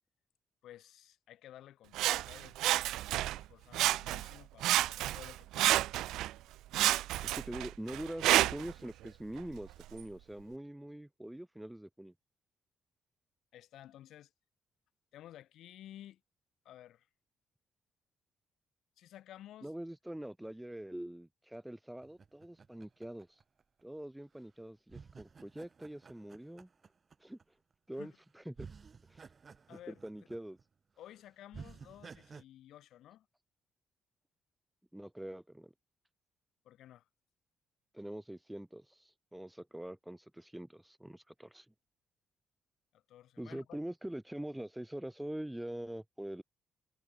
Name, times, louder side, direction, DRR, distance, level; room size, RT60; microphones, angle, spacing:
voice 1, 0.6-2.6 3.3-5.9 13.5-14.3 15.1-16.2 16.6-17.1 19.0-19.7 28.0-28.2 29.7-30.0 31.0-33.3 36.6-37.1 42.9-43.6, left 12 dB, 80° left, 4.0 m, -54 dB
Sawing, 1.9-3.4 3.7-4.3 4.6-6.3 6.7-8.7 9.4-9.5, right 15 dB, 90° right, 0.3 m, -30 dB
voice 2, 7.2-12.1 19.6-23.4 23.8-26.7 27.2-27.4 27.9-28.7 29.1-29.3 29.9-30.6 34.9-35.7 37.9-41.6 43.4-46.4, right 1 dB, 5° right, 1.7 m, -44 dB
sound 1, 22.0-24.0 24.9-27.4 28.1-28.2 28.5-30.6 31.0-31.1 31.5-32.4, right 5 dB, 40° right, 1.7 m, -53 dB
cardioid pair, 90°, 0 cm